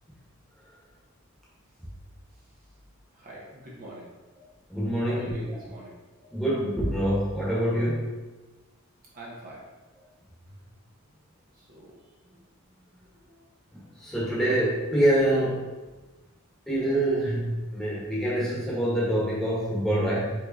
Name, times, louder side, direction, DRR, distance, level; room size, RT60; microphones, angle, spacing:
voice 1, 3.1-4.1 5.1-6.0 9.1-9.6 11.5-12.0 13.3-13.4, right 1 dB, 40° right, -5 dB, 0.7 m, -43 dB
voice 2, 4.7-5.3 6.3-8.1 14.0-15.6 16.7-20.3, right 1 dB, ahead, -8 dB, 1.0 m, -25 dB
4.6 x 3.0 x 2.6 m, 1.2 s
head